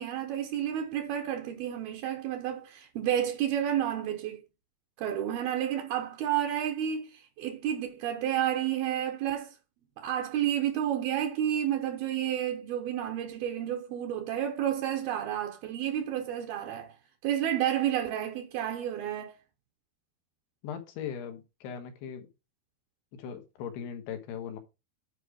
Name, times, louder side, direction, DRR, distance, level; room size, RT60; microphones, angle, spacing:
voice 1, 0.0-4.4 5.0-9.5 10.0-16.9 17.2-19.3, right 10 dB, 75° right, 2.7 m, -30 dB
voice 2, 20.6-22.3 23.1-24.6, left 8 dB, 90° left, 3.4 m, -39 dB
9.8 x 4.9 x 4.9 m
omnidirectional pair, 4.6 m